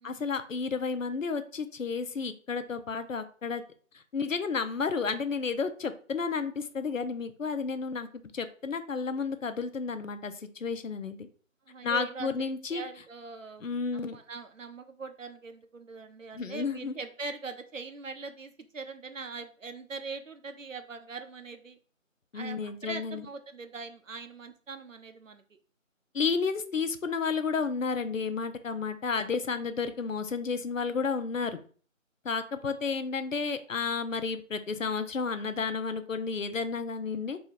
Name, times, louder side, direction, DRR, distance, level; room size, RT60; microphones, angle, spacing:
voice 1, 0.0-3.6 3.9-8.1 8.3-11.3 11.8-12.8 13.6-14.2 16.3-16.9 22.3-23.2 26.1-31.6 32.2-37.4, left 5 dB, 70° left, 10 dB, 0.6 m, -32 dB
voice 2, 11.7-13.6 14.1-21.8 22.3-25.4, right 4 dB, 70° right, 8 dB, 0.7 m, -42 dB
3.1 x 2.9 x 4.0 m, 0.43 s
figure-of-eight pair, 170°, 40 cm